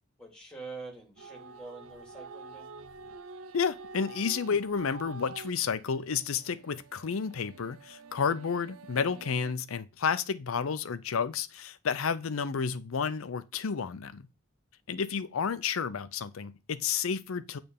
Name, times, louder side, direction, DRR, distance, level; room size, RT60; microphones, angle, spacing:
voice 1, 0.2-2.7 14.8-15.2, right 3 dB, 5° left, 2.5 m, -46 dB
sound 1, 1.2-9.5, right 4 dB, 80° right, 0.6 m, -48 dB
voice 2, 3.5-14.3 14.9-17.6, left 6 dB, 75° left, 0.5 m, -31 dB
8.7 x 3.4 x 5.3 m
head